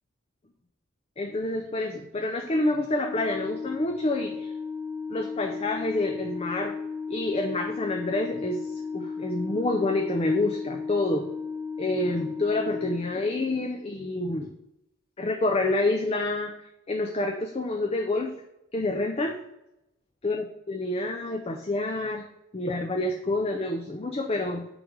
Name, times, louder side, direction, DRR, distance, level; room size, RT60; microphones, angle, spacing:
voice 1, 1.2-4.5 5.1-6.7 7.1-11.3 11.8-14.5 15.2-16.5 16.9-18.4 18.7-19.4 20.2-22.3 22.5-24.7, left 2 dB, 30° left, 3 dB, 0.6 m, -28 dB
Organ, 2.8-13.6, left 5 dB, 50° left, 1.3 m, -35 dB
8.7 x 3.4 x 6.1 m, 0.87 s
head